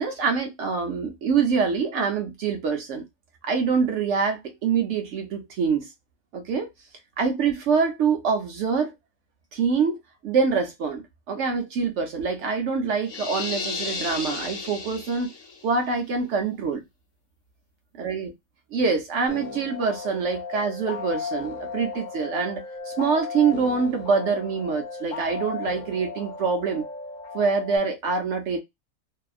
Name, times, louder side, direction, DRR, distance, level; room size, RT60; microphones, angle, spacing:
voice 1, 0.0-3.0 3.4-5.9 6.3-6.7 7.2-8.9 9.5-15.3 15.6-16.8 18.0-18.3 18.7-26.9 27.3-28.6, right 5 dB, 65° right, 0.8 m, -25 dB
sound 1, 13.1-15.6, left 4 dB, 55° left, 0.9 m, -33 dB
sound 2, 19.3-27.8, left 5 dB, 90° left, 0.4 m, -35 dB
2.7 x 2.2 x 2.3 m
omnidirectional pair, 1.5 m